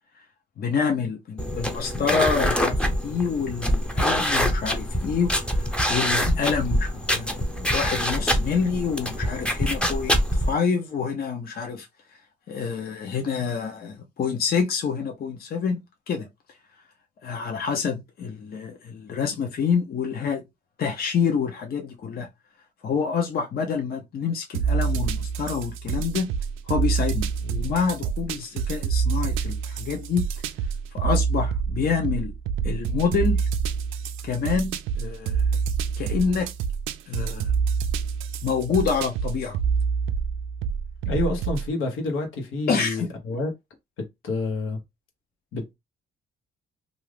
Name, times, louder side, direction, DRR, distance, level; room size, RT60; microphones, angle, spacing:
voice 1, 0.6-11.9 12.5-15.8 16.1-16.3 17.2-20.4 20.8-22.3 22.8-26.3 26.7-30.2 30.9-32.3 32.6-33.4 34.2-35.6 36.0-36.5 37.1-37.5 38.4-39.6 42.7-43.1, left 6 dB, 50° left, 0.7 m, -27 dB
sound 1, 1.4-10.5, equal, 5° left, 0.6 m, -25 dB
sound 2, 24.5-41.7, right 6 dB, 90° right, 0.4 m, -27 dB
voice 2, 41.0-43.5 44.0-44.8 45.5-45.7, left 3 dB, 85° left, 1.1 m, -28 dB
2.6 x 2.4 x 3.3 m
cardioid pair, 90°, 20 cm